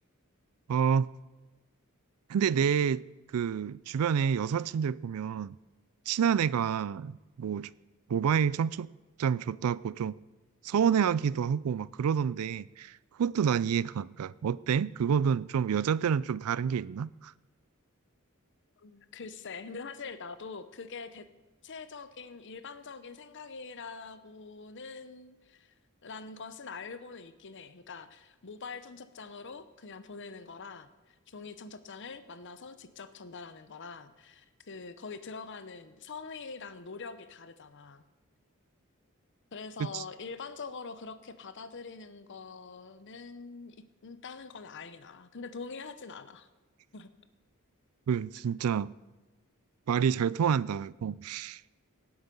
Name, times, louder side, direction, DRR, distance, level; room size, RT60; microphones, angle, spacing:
voice 1, 0.7-1.1 2.3-3.0 3.3-5.5 6.1-7.7 8.1-8.9 9.2-10.2 10.6-17.3 39.9-40.0 48.1-48.9 49.9-51.6, right 7 dB, 90° right, 0.4 m, -28 dB
voice 2, 18.8-21.3 21.6-25.7 26.0-38.0 39.5-46.5 46.9-47.1, left 4 dB, 60° left, 0.8 m, -44 dB
18.0 x 7.9 x 5.4 m
head